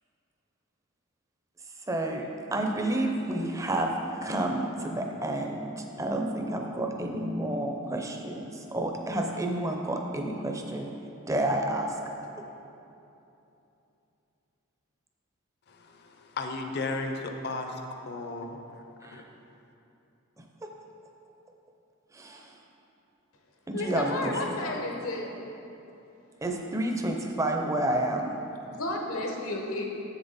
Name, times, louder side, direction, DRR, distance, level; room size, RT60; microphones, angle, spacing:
voice 1, 1.9-3.9 4.2-10.9 11.3-12.0 19.0-19.2 20.6-20.7 22.1-22.6 23.7-24.6 26.4-28.4, right 1 dB, 15° right, 2 dB, 0.5 m, -30 dB
voice 2, 15.7-18.6 19.1-19.2, left 3 dB, 50° left, 4 dB, 0.6 m, -35 dB
voice 3, 23.7-25.4 28.7-29.9, left 2 dB, 80° left, 1 dB, 1.0 m, -32 dB
7.5 x 6.9 x 4.1 m, 2.9 s
head